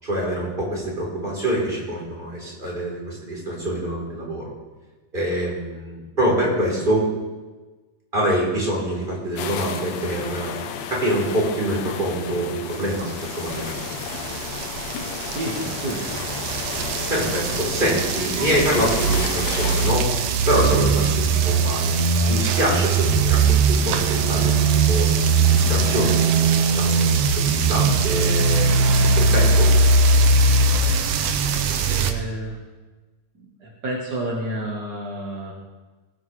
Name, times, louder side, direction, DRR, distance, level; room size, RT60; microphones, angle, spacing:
voice 1, 0.0-4.5 5.1-7.1 8.1-10.5 10.9-13.7 17.1-20.1 20.5-25.1 25.4-28.6 29.2-29.7, right 1 dB, 15° right, -4 dB, 3.5 m, -25 dB
sound 1, 9.4-19.9, left 7 dB, 85° left, 2.6 m, -32 dB
sound 2, 13.5-32.1, right 3 dB, 75° right, 1.7 m, -20 dB
voice 2, 15.2-16.1 31.7-32.6 33.6-35.5, right 1 dB, 55° right, -3 dB, 1.1 m, -30 dB
19.0 x 9.5 x 3.2 m, 1.3 s
omnidirectional pair, 4.0 m